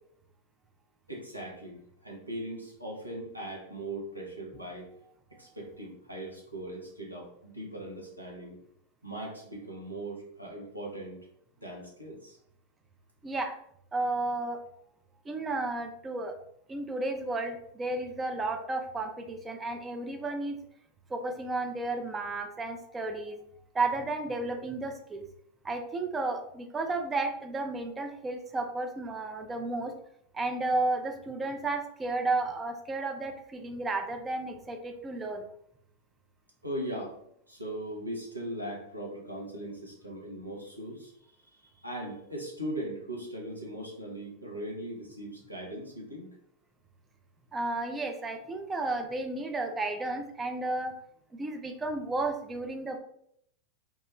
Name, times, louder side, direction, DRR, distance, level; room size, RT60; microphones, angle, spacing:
voice 1, 1.1-4.9 5.4-8.6 9.0-11.2 11.6-12.4 36.6-37.2 37.5-41.1 41.8-46.3, right 1 dB, 90° right, -2 dB, 0.6 m, -39 dB
voice 2, 13.2-13.5 13.9-14.6 15.3-16.3 16.7-20.6 21.1-23.4 23.7-25.2 25.6-29.9 30.3-35.4 47.5-51.0 51.4-53.0, right 2 dB, 15° right, 5 dB, 0.4 m, -33 dB
2.2 x 2.1 x 3.0 m, 0.71 s
figure-of-eight pair, 90°, 0 cm